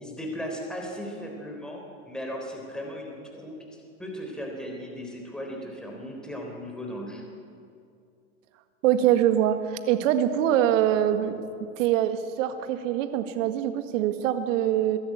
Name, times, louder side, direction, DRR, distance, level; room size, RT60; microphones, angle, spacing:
voice 1, 0.0-7.2, equal, ahead, 0 dB, 3.8 m, -37 dB
voice 2, 8.8-11.4 11.8-15.0, right 11 dB, 60° right, 9 dB, 1.9 m, -24 dB
22.5 x 13.0 x 9.5 m, 2.4 s
hypercardioid pair, 130°, 42 cm